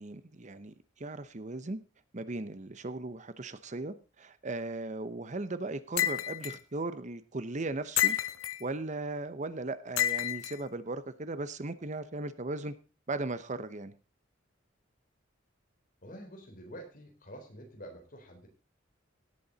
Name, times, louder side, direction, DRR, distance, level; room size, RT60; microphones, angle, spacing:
voice 1, 0.0-1.8 2.1-8.2 8.6-12.7 13.1-13.9, right 2 dB, 40° right, 13 dB, 0.8 m, -37 dB
sound 1, 6.0-6.6 8.0-8.6 10.0-10.5, left 12 dB, 90° left, 0.6 m, -29 dB
voice 2, 16.0-18.5, equal, 45° left, 3 dB, 4.2 m, -47 dB
17.5 x 8.6 x 4.1 m, 0.32 s
head